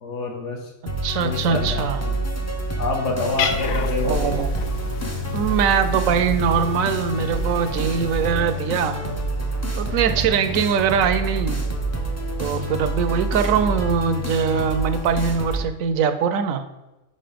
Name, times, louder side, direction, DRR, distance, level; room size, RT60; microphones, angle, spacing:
voice 1, 0.0-0.7 1.2-2.2 2.8-4.3 9.8-10.0, left 3 dB, 55° left, 1 dB, 1.5 m, -28 dB
sound 1, 0.9-15.6, right 1 dB, 15° left, 0.5 m, -27 dB
voice 2, 1.0-2.0 4.0-4.5 5.3-9.0 9.8-11.6 12.4-16.6, right 7 dB, 70° right, 10 dB, 1.0 m, -22 dB
Cat, 3.3-8.4, left 6 dB, 70° left, 1.0 m, -31 dB
5.6 x 5.4 x 5.1 m, 1.0 s
omnidirectional pair, 1.5 m